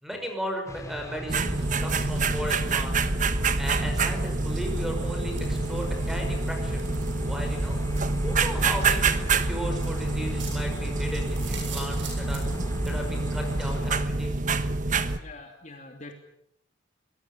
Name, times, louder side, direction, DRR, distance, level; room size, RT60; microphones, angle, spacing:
voice 1, 0.0-2.9 3.6-6.9 7.2-7.8 8.2-12.5 12.9-14.4, equal, ahead, 3 dB, 5.7 m, -36 dB
sound 1, 0.6-14.1, left 1 dB, 15° left, 2.2 m, -43 dB
sound 2, 1.3-15.2, right 3 dB, 40° right, 1.2 m, -27 dB
sound 3, 1.3-12.9, right 6 dB, 75° right, 7.7 m, -48 dB
voice 2, 15.2-16.1, left 3 dB, 40° left, 3 dB, 2.7 m, -44 dB
24.5 x 21.0 x 7.0 m, 0.73 s
head